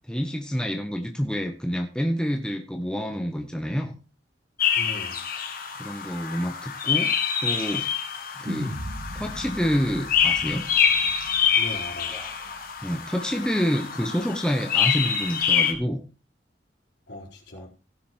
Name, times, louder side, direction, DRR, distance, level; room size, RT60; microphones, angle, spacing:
voice 1, 0.1-4.0 5.8-7.1 7.4-7.8 8.4-8.7 9.1-10.6 12.1-12.5 12.8-16.0 17.5-17.7, equal, 5° left, 1.2 m, -28 dB
sound 1, 4.6-15.7, left 7 dB, 50° left, 1.9 m, -26 dB
voice 2, 4.8-5.2 11.6-12.2 17.1-17.7, left 1 dB, 65° left, 4.3 m, -38 dB
sound 2, 8.4-12.8, equal, 70° right, 2.8 m, -38 dB
16.0 x 7.0 x 4.6 m
head